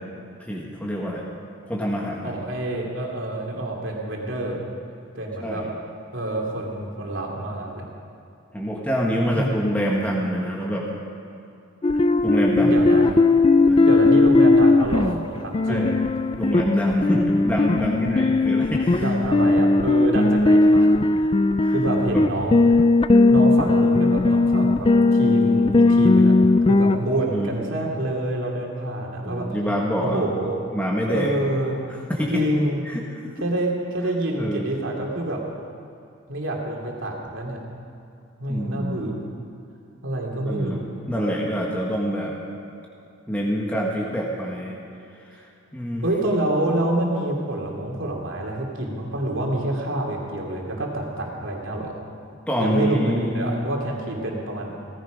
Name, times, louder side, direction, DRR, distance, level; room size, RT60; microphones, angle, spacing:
voice 1, 0.4-1.2 1.7-2.3 5.4-5.7 8.5-10.8 12.2-12.9 13.7-13.9 15.7-15.9 16.4-19.1 21.6-21.7 22.1-22.3 27.3-27.5 29.2-30.3 30.7-31.3 31.9-32.4 32.8-33.3 34.4-34.7 38.5-39.0 40.4-42.3 43.3-44.8 45.3-45.4 45.7-46.0 52.5-53.6, equal, 10° left, -3 dB, 1.4 m, -26 dB
voice 2, 2.2-4.6 5.1-5.6 6.1-7.8 9.2-9.5 12.6-13.1 13.9-16.0 17.8-18.0 19.0-21.3 21.7-22.8 23.3-26.3 26.7-29.5 30.0-30.6 31.1-31.8 32.3-32.8 33.4-35.4 36.3-37.6 38.4-39.3 40.0-40.8 46.0-52.0 52.6-54.7, right 1 dB, 75° right, -1 dB, 2.7 m, -27 dB
sound 1, 11.8-27.0, left 2 dB, 25° left, 0.4 m, -18 dB
17.5 x 15.0 x 5.1 m, 2.7 s
head